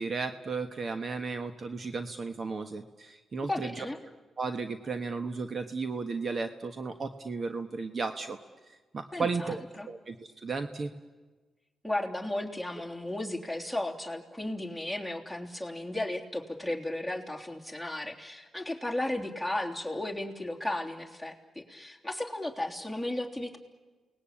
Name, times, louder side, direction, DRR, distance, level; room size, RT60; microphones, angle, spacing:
voice 1, 0.0-3.9 4.4-8.4 8.7-10.9, right 4 dB, 50° right, 8 dB, 1.3 m, -34 dB
voice 2, 3.5-4.0 9.1-9.9 11.8-23.6, left 1 dB, 5° right, 1 dB, 3.2 m, -35 dB
29.0 x 19.5 x 8.8 m, 1.3 s
cardioid pair, 75°, 0 cm